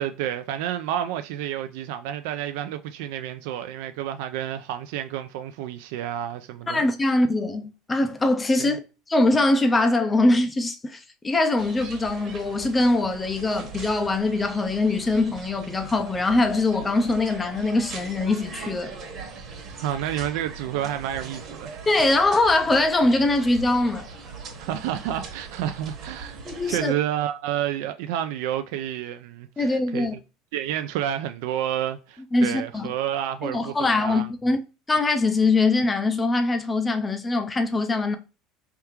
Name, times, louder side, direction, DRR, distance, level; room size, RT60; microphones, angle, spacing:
voice 1, 0.0-6.8 8.6-8.8 19.7-21.8 24.6-26.4 26.7-30.1 30.5-34.3, right 11 dB, 70° right, 0.3 m, -30 dB
voice 2, 6.7-8.8 9.1-18.9 21.9-24.0 26.5-26.9 29.6-30.1 32.3-32.9 33.4-34.6 34.9-38.2, left 2 dB, 10° left, 0.4 m, -22 dB
sound 1, 11.6-26.8, right 5 dB, 35° right, 1.1 m, -40 dB
4.6 x 3.4 x 2.9 m
cardioid pair, 175°, 0 cm